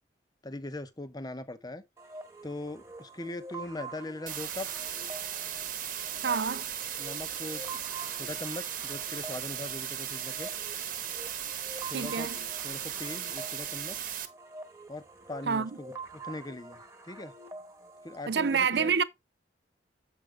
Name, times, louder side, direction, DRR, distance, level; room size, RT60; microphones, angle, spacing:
voice 1, 0.4-1.8 2.4-4.7 7.0-7.8 8.2-10.5 11.9-12.3 12.6-14.1 14.9-17.3 18.0-18.9, left 2 dB, 20° left, 0.9 m, -40 dB
sound 1, 2.0-18.5, right 3 dB, 15° right, 1.4 m, -47 dB
sound 2, 4.3-14.3, right 9 dB, 50° right, 1.2 m, -37 dB
voice 2, 6.2-6.7 11.9-12.4 15.5-15.7 18.3-19.0, right 6 dB, 65° right, 0.6 m, -28 dB
8.1 x 5.2 x 3.4 m
head